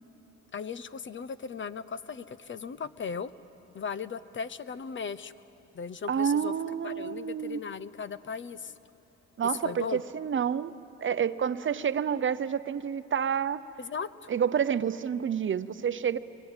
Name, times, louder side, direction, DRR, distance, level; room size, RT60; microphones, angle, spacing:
voice 1, 0.5-3.3 3.7-5.3 5.7-6.5 6.8-8.7 9.4-10.0 13.8-14.3, left 6 dB, 40° left, 15 dB, 0.8 m, -37 dB
voice 2, 6.1-7.6 9.4-10.7 11.0-13.6 14.3-16.2, right 8 dB, 40° right, 14 dB, 0.7 m, -29 dB
25.5 x 22.0 x 9.0 m, 2.8 s
cardioid pair, 90°, 30 cm